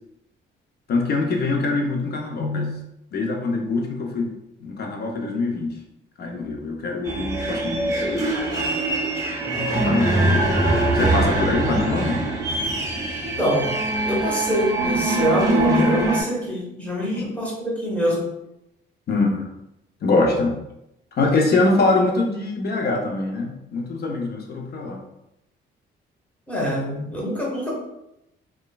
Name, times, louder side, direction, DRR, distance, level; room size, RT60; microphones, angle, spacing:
voice 1, 0.9-2.8 3.1-4.3 4.6-5.7 6.2-8.3 9.7-10.5 10.9-12.2 17.2-17.3 19.1-19.5 20.0-20.6 21.1-25.0, left 3 dB, 55° left, 1 dB, 0.6 m, -23 dB
sound 1, 7.1-16.2, right 2 dB, 15° right, 0.6 m, -23 dB
voice 2, 13.2-13.7 14.1-18.3 26.5-27.7, equal, 5° left, -4 dB, 1.0 m, -24 dB
3.0 x 2.2 x 2.2 m, 0.85 s
cardioid pair, 90°, 20 cm